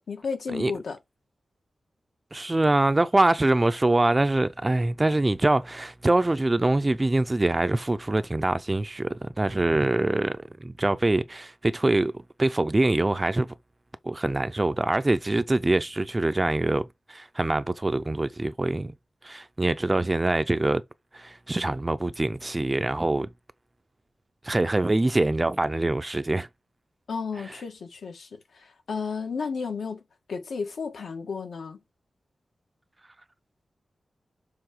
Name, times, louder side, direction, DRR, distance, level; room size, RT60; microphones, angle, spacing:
voice 1, 0.1-1.0 27.1-30.0 30.3-31.8, left 5 dB, 85° left, 1.8 m, -33 dB
voice 2, 2.3-12.1 12.4-13.5 14.0-18.9 19.2-20.8 21.1-23.3 24.4-26.5, right 2 dB, 20° right, 0.5 m, -24 dB
6.8 x 3.6 x 6.1 m
wide cardioid pair, 145°, 0 cm